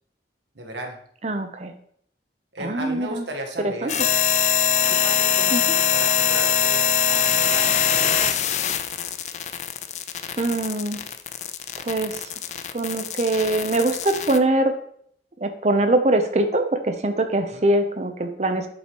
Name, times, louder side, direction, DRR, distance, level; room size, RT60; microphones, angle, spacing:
voice 1, 0.5-1.0 2.5-4.0 4.9-9.0 17.5-17.6, right 1 dB, 85° right, 2 dB, 1.4 m, -36 dB
voice 2, 1.2-1.7 2.6-3.3 3.6-3.9 5.5-5.6 10.4-11.0 11.8-12.2 12.7-14.7 15.4-18.7, right 2 dB, 40° right, 7 dB, 0.7 m, -23 dB
sound 1, 3.9-14.4, left 8 dB, 40° left, 0.3 m, -23 dB
8.0 x 5.3 x 3.0 m, 0.66 s
head